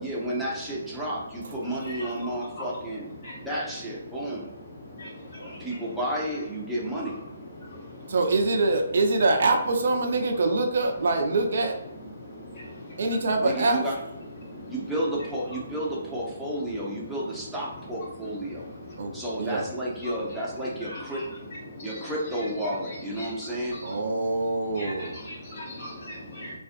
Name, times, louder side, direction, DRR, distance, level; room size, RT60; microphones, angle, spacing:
voice 1, 0.0-3.1 3.4-4.5 5.5-7.2 13.4-14.0 14.7-18.7 19.1-21.2 21.8-23.8, right 1 dB, ahead, -7 dB, 0.6 m, -31 dB
voice 2, 1.8-2.3 2.6-2.7 3.2-3.3 5.0-5.1 5.4-5.5 15.2-15.3 20.0-20.1 20.8-21.2 21.8-23.8 24.8-26.5, left 1 dB, 45° left, -4 dB, 1.1 m, -39 dB
voice 3, 8.1-11.8 13.0-13.8 19.0-19.7 23.8-25.2, right 2 dB, 60° right, 4 dB, 0.5 m, -24 dB
2.4 x 2.4 x 2.6 m, 0.87 s
hypercardioid pair, 150°, 0 cm